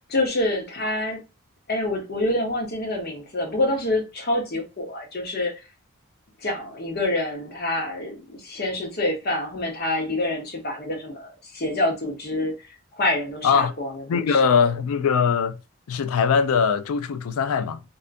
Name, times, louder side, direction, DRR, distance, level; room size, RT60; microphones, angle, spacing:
voice 1, 0.1-1.2 1.7-5.5 6.4-12.5 12.9-14.4, left 1 dB, 45° left, 0.8 m, -26 dB
voice 2, 14.1-15.6 15.9-17.8, left 6 dB, 75° left, 0.3 m, -21 dB
2.6 x 2.3 x 2.4 m
head